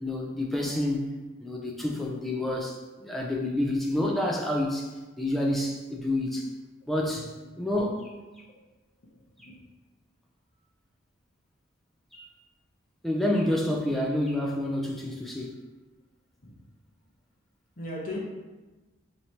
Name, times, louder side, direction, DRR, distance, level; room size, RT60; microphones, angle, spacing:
voice 1, 0.0-1.1 1.4-4.9 5.2-6.5 6.9-7.3 7.6-8.0 9.4-9.5 12.1-12.3 13.0-15.5, left 1 dB, ahead, -2 dB, 0.4 m, -28 dB
voice 2, 6.8-7.7 9.0-9.6 16.4-16.5 17.8-18.2, left 1 dB, 45° left, -3 dB, 0.8 m, -40 dB
4.5 x 2.9 x 2.7 m, 1.2 s
head